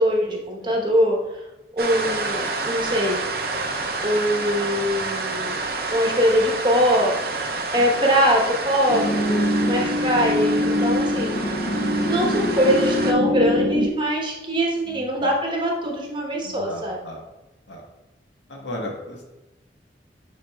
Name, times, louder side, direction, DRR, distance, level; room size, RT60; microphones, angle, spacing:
voice 1, 0.0-1.4 1.7-3.2 4.0-5.6 5.9-7.1 7.7-11.3 12.1-17.0, equal, 25° right, -1 dB, 1.1 m, -22 dB
sound 1, 1.8-13.1, right 3 dB, 55° right, 0.6 m, -29 dB
sound 2, 8.9-13.9, left 1 dB, 40° left, 0.6 m, -23 dB
voice 2, 14.9-15.3 16.4-17.2 17.7-17.8 18.5-19.2, equal, 80° left, 0 dB, 1.3 m, -36 dB
8.2 x 5.3 x 2.3 m, 1.0 s
head